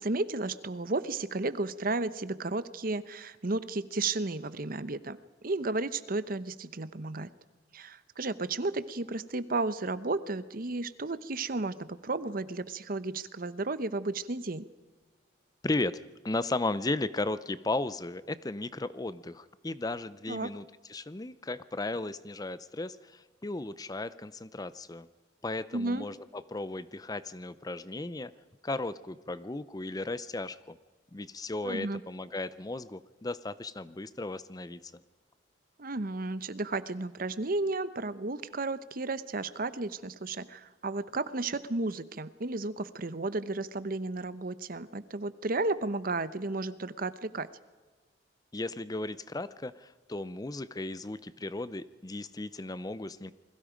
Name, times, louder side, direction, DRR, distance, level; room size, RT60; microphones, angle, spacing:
voice 1, 0.0-5.2 5.4-7.3 7.7-14.6 20.3-20.5 25.7-26.1 31.6-32.0 35.8-47.5, right 2 dB, 50° right, 14 dB, 0.9 m, -33 dB
voice 2, 15.6-16.0 16.2-25.1 25.4-28.3 28.6-30.8 31.1-35.0 48.5-53.3, left 2 dB, 20° left, 15 dB, 0.6 m, -35 dB
28.5 x 21.5 x 5.1 m, 1.3 s
head